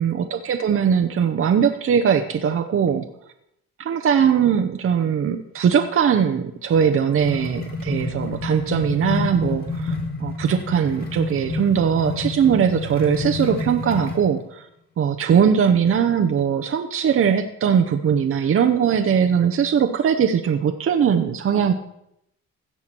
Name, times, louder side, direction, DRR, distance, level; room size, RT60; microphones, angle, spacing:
voice 1, 0.0-3.1 3.8-9.9 10.2-14.7 15.0-21.7, right 7 dB, 45° right, 6 dB, 0.7 m, -20 dB
sound 1, 6.7-14.3, left 3 dB, 30° left, 2.9 m, -29 dB
16.0 x 5.7 x 4.4 m, 0.79 s
cardioid pair, 90°, 30 cm